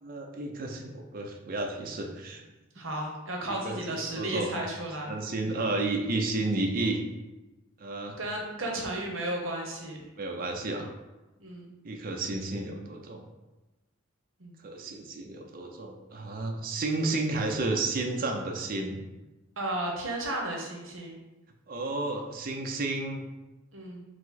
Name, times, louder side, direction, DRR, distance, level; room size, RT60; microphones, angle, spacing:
voice 1, 0.0-2.4 3.5-3.8 4.1-4.5 5.1-7.0 7.8-8.2 8.6-8.7 10.2-10.9 11.8-13.2 14.6-19.0 21.7-23.2, right 2 dB, 45° right, 2 dB, 0.5 m, -32 dB
voice 2, 2.8-5.2 5.4-5.7 8.2-10.0 11.4-11.7 14.4-14.6 19.6-21.2 23.7-24.0, right 1 dB, 75° right, 0 dB, 0.9 m, -34 dB
4.9 x 2.0 x 4.0 m, 1.1 s
head